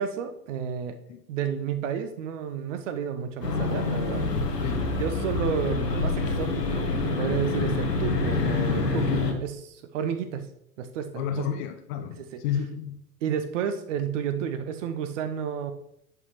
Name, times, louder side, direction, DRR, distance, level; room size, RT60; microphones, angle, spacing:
voice 1, 0.0-1.0 1.3-4.3 5.0-10.5 10.8-11.5 12.2-12.4 13.2-15.7, right 7 dB, 50° right, 0.9 m, -31 dB
sound 1, 3.4-9.3, left 3 dB, 85° left, 1.2 m, -26 dB
voice 2, 11.1-13.0, left 9 dB, 30° left, 0.5 m, -31 dB
11.0 x 5.7 x 3.1 m
figure-of-eight pair, 90°, 48 cm